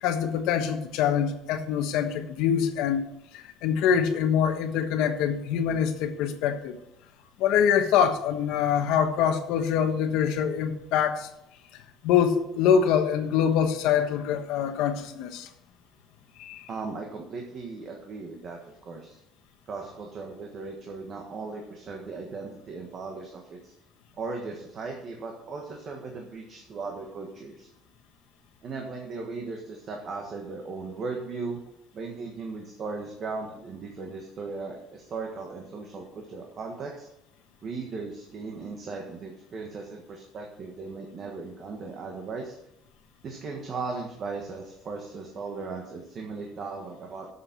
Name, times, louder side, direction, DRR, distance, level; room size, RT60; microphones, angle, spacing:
voice 1, 0.0-3.0 3.3-6.7 7.4-11.3 12.0-15.5 16.4-16.7, left 8 dB, 85° left, 7 dB, 1.3 m, -24 dB
voice 2, 16.7-19.2 19.7-23.7 24.2-27.7 28.6-31.6 31.9-37.1 37.6-42.6 43.2-47.3, right 4 dB, 35° right, 1 dB, 1.5 m, -37 dB
8.5 x 7.1 x 7.5 m, 0.83 s
cardioid pair, 170°, 0 cm